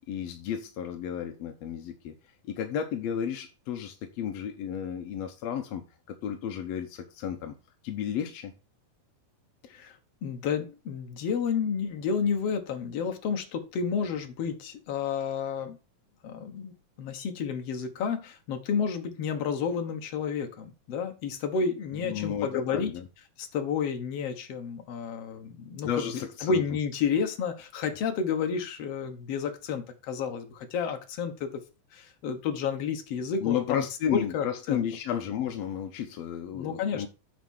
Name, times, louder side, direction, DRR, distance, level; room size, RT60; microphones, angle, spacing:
voice 1, 0.1-2.1 2.4-7.5 7.8-8.5 21.9-23.1 25.8-26.6 33.4-37.1, left 9 dB, 75° left, 1.5 m, -33 dB
voice 2, 9.7-15.8 16.2-16.7 17.0-22.9 23.4-26.0 26.4-31.6 31.9-33.8 34.1-34.9 36.5-37.1, left 6 dB, 60° left, 1.9 m, -31 dB
9.4 x 4.1 x 6.4 m
omnidirectional pair, 3.9 m